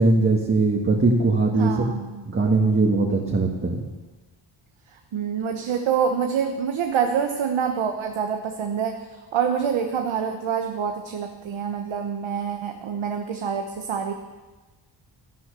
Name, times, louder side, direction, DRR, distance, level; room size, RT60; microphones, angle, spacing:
voice 1, 0.0-1.9 2.3-3.8, right 3 dB, 25° right, -2 dB, 1.8 m, -20 dB
voice 2, 1.6-2.2 5.1-9.0 9.3-14.1, right 7 dB, 80° right, 4 dB, 1.2 m, -26 dB
13.0 x 11.5 x 6.9 m, 1.2 s
wide cardioid pair, 120°, 46 cm